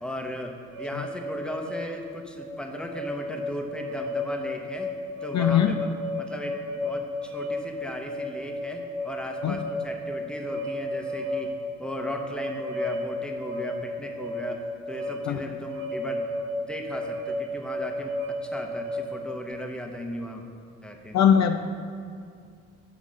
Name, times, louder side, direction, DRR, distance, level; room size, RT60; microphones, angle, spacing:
voice 1, 0.0-4.9 5.2-16.3 16.6-20.4 20.8-21.2, left 1 dB, 5° left, 3 dB, 0.8 m, -37 dB
sound 1, 0.7-19.5, left 1 dB, 80° right, 0.9 m, -33 dB
voice 2, 5.3-5.7 9.4-9.6 15.3-15.4 21.1-21.6, left 9 dB, 55° left, 7 dB, 0.4 m, -20 dB
7.3 x 3.6 x 6.4 m, 2.2 s
supercardioid pair, 75°, 34 cm